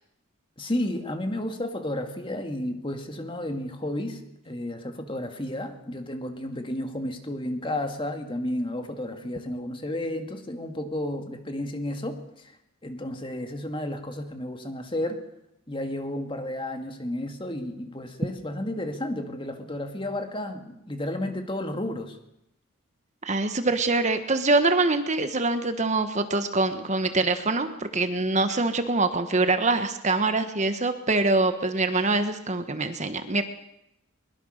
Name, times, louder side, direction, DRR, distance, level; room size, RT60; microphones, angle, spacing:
voice 1, 0.6-12.5 12.8-15.2 15.7-22.2, left 1 dB, 25° left, 6 dB, 2.2 m, -32 dB
voice 2, 23.2-33.4, right 3 dB, 35° right, 9 dB, 1.3 m, -24 dB
22.5 x 22.0 x 6.6 m, 0.82 s
head